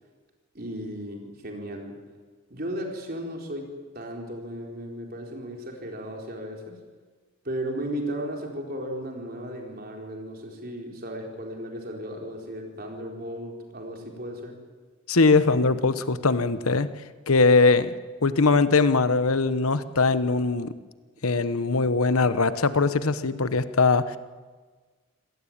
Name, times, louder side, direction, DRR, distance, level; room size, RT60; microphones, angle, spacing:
voice 1, 0.5-2.0 2.5-6.8 7.4-14.6, equal, 45° right, 1 dB, 4.3 m, -35 dB
voice 2, 15.1-16.9 17.3-17.9 18.2-20.7 21.2-24.2, left 3 dB, 85° left, 13 dB, 1.1 m, -21 dB
26.0 x 17.5 x 8.8 m, 1.4 s
head